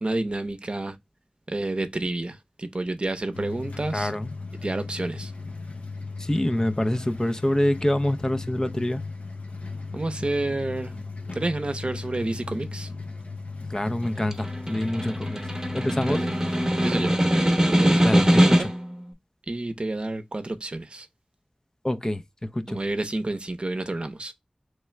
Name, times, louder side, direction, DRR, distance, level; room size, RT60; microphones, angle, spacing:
voice 1, 0.0-1.0 1.5-4.1 4.6-5.3 9.9-11.0 11.3-12.9 16.1-16.3 16.8-17.2 17.7-18.7 19.5-21.1 22.7-24.3, right 2 dB, 50° right, 0.6 m, -29 dB
sound 1, 3.3-17.3, left 3 dB, 75° left, 0.9 m, -36 dB
voice 2, 3.9-4.3 6.2-9.0 13.7-16.2 18.0-18.7 21.8-22.8, left 1 dB, 30° left, 0.5 m, -26 dB
Snare drum, 14.0-18.9, equal, 20° right, 0.9 m, -22 dB
3.5 x 3.3 x 3.2 m
wide cardioid pair, 60°, 2 cm